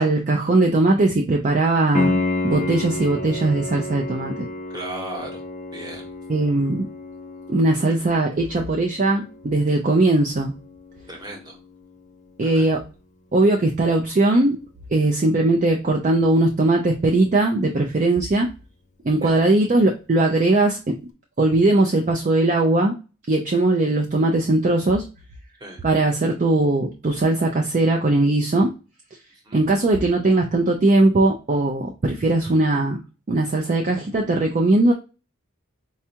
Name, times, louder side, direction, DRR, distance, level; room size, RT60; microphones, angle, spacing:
voice 1, 0.0-2.2 2.4-4.5 6.3-6.9 7.5-10.5 12.4-12.8 13.3-14.6 14.9-18.5 19.0-21.0 21.4-22.9 23.3-25.0 25.8-28.7 29.5-33.0 33.3-34.9, right 2 dB, 35° right, 1 dB, 0.4 m, -19 dB
Piano, 1.9-12.6 15.9-16.0, left 2 dB, 35° left, 0.4 m, -31 dB
voice 2, 4.7-5.4 5.7-6.1 11.1-11.6 12.4-12.7 19.2-19.4 25.6-25.8 29.4-29.6, right 1 dB, 20° right, 1 dB, 0.9 m, -36 dB
4.3 x 2.3 x 2.8 m, 0.31 s
head